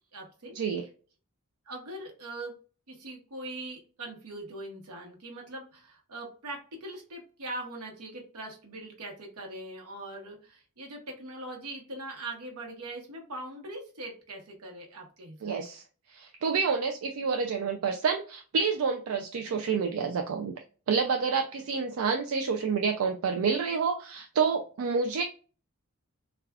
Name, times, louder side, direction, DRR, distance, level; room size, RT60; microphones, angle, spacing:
voice 1, 0.1-0.5 1.7-2.6 2.9-15.5, right 2 dB, 85° right, 1 dB, 1.0 m, -41 dB
voice 2, 15.4-15.8 16.1-20.5 20.9-25.2, right 5 dB, 70° right, 4 dB, 0.4 m, -28 dB
3.3 x 2.3 x 2.3 m, 0.38 s
head